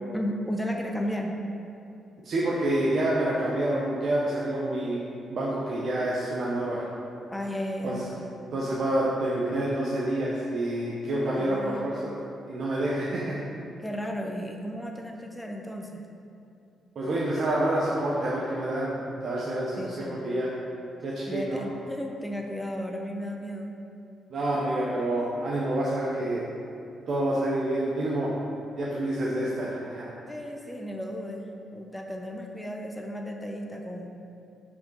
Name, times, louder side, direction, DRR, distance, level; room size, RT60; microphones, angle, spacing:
voice 1, 0.1-1.4 7.3-8.3 11.3-11.9 13.8-16.0 19.8-20.2 21.3-23.7 30.2-34.1, equal, 10° left, 1 dB, 0.8 m, -34 dB
voice 2, 2.2-5.0 5.3-6.9 7.8-8.0 8.5-12.2 12.5-13.4 16.9-20.5 21.0-21.6 24.3-26.4 27.1-28.3 28.7-30.1, right 1 dB, 60° right, -6 dB, 1.0 m, -28 dB
5.7 x 5.0 x 4.6 m, 2.6 s
hypercardioid pair, 50°, 0 cm